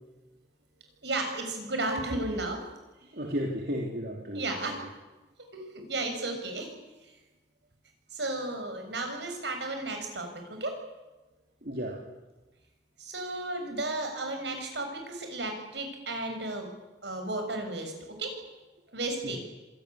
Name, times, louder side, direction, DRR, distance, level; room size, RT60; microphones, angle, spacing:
voice 1, 1.0-2.6 4.3-4.8 5.5-6.7 7.0-7.1 8.1-10.8 13.0-16.7 17.0-18.3 18.9-19.4, right 2 dB, 75° right, 5 dB, 6.8 m, -34 dB
voice 2, 3.1-4.8 11.6-12.0 19.2-19.4, equal, 55° right, -1 dB, 3.4 m, -34 dB
26.5 x 18.0 x 10.0 m, 1.1 s
head